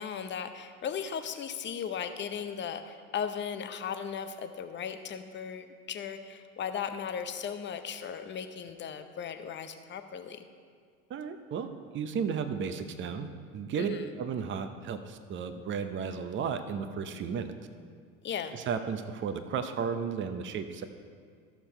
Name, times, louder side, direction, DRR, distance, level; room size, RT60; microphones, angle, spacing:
voice 1, 0.0-10.4 13.8-14.1 18.2-18.5, left 7 dB, 25° left, 8 dB, 0.8 m, -37 dB
voice 2, 11.1-17.5 18.5-20.8, right 6 dB, 25° right, 9 dB, 0.8 m, -34 dB
13.0 x 7.0 x 4.4 m, 2.1 s
hypercardioid pair, 80°, 43 cm